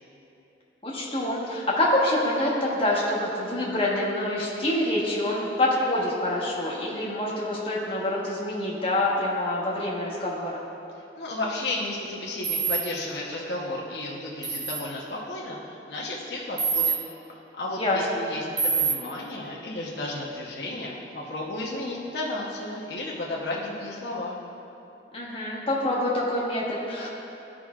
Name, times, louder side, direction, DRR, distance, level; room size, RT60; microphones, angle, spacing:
voice 1, 0.8-10.6 17.8-18.0 25.1-27.1, left 1 dB, 30° left, -5 dB, 1.2 m, -26 dB
voice 2, 11.1-17.0 17.6-24.4, left 2 dB, 70° left, -4 dB, 0.9 m, -33 dB
sound 1, 12.4-12.8 14.4-14.8 16.6-17.0 18.6-18.9, right 6 dB, 35° right, 0.8 m, -25 dB
14.0 x 5.0 x 2.4 m, 3.0 s
head